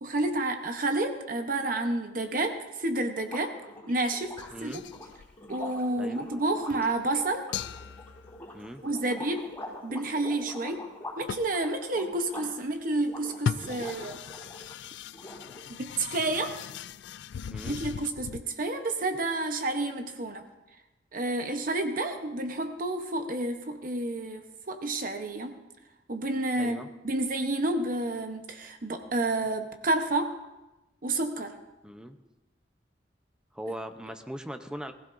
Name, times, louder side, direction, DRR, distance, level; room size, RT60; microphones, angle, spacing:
voice 1, 0.0-3.5 3.9-4.3 4.6-4.8 5.5-7.5 8.8-9.4 9.8-10.8 11.2-14.2 15.8-16.5 17.6-20.4 21.1-25.6 26.1-26.8 27.0-30.3 31.0-31.5, right 2 dB, 50° right, 6 dB, 0.9 m, -30 dB
sound 1, 3.2-14.8 15.1-15.9, left 1 dB, 10° left, 4.4 m, -44 dB
sound 2, 4.2-5.8 6.3-6.4 6.7-7.0 7.5-8.9 10.9-11.0 11.3-11.6 13.3-18.4, left 7 dB, 80° left, 0.3 m, -38 dB
voice 2, 4.5-4.8 6.0-6.3 8.5-8.8 17.5-17.8 26.6-26.9 31.8-32.2 33.5-34.9, equal, 5° right, 7 dB, 0.6 m, -39 dB
20.5 x 15.0 x 2.6 m, 1.0 s
head